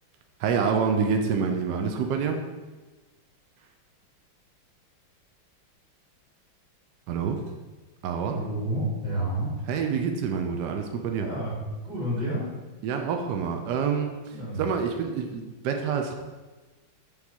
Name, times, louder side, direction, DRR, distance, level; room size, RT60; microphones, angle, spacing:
voice 1, 0.4-2.4 7.1-7.4 8.0-8.4 9.7-11.3 12.8-16.2, right 6 dB, 70° right, 4 dB, 1.0 m, -27 dB
voice 2, 8.3-9.5 11.2-12.5 14.3-14.6, right 1 dB, 50° right, -6 dB, 2.5 m, -30 dB
7.1 x 3.2 x 5.8 m, 1.2 s
omnidirectional pair, 2.3 m